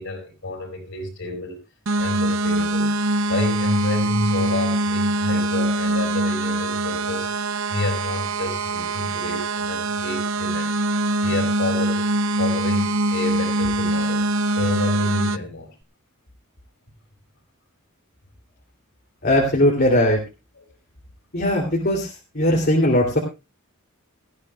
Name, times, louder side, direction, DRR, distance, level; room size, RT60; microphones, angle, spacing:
voice 1, 0.0-1.6 2.0-2.9 3.3-7.3 7.7-10.8 11.2-12.1 12.4-14.3 14.6-15.7 20.6-20.7, left 2 dB, 65° left, 3 dB, 5.2 m, -29 dB
sound 1, 1.9-15.4, right 2 dB, 60° right, 0.8 m, -23 dB
voice 2, 19.2-20.2 21.3-23.2, left 1 dB, 45° left, -2 dB, 3.0 m, -19 dB
18.5 x 14.5 x 2.4 m, 0.27 s
head